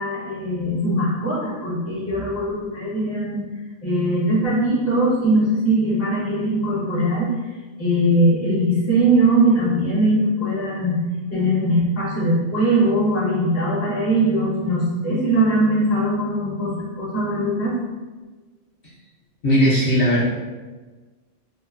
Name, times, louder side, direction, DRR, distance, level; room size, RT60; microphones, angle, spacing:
voice 1, 0.0-3.4 3.8-7.3 7.8-11.0 11.3-17.8, right 1 dB, 15° left, -8 dB, 0.6 m, -20 dB
voice 2, 19.4-20.2, equal, 50° left, -10 dB, 0.8 m, -17 dB
3.0 x 2.1 x 2.3 m, 1.3 s
omnidirectional pair, 1.4 m